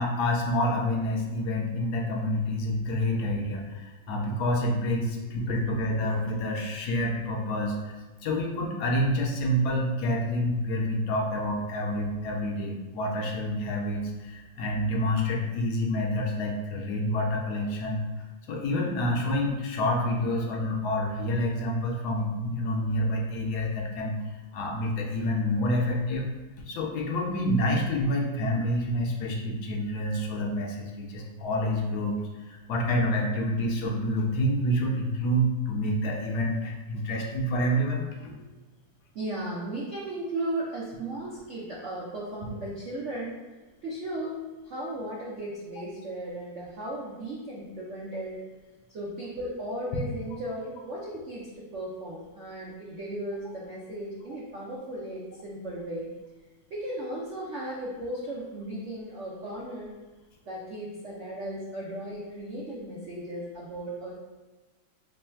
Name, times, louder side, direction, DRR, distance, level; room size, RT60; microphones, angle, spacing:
voice 1, 0.0-8.0 8.2-18.0 18.5-24.2 24.5-26.3 26.6-32.2 32.5-38.3, left 1 dB, 70° left, 0 dB, 1.0 m, -28 dB
voice 2, 39.1-43.4 43.8-48.4 48.9-56.1 56.7-59.9 60.5-64.2, right 1 dB, 80° right, -5 dB, 0.6 m, -36 dB
3.2 x 2.3 x 4.3 m, 1.2 s
omnidirectional pair, 2.1 m